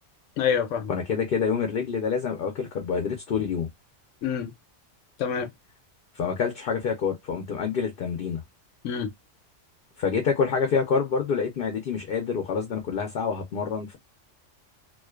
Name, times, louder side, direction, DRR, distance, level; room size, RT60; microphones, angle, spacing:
voice 1, 0.4-0.9 4.2-4.5 5.2-5.5 8.8-9.1, left 7 dB, 80° left, 0.9 m, -26 dB
voice 2, 0.9-3.7 6.2-8.4 10.0-14.0, left 6 dB, 55° left, 0.7 m, -27 dB
2.4 x 2.3 x 2.2 m
omnidirectional pair, 1.3 m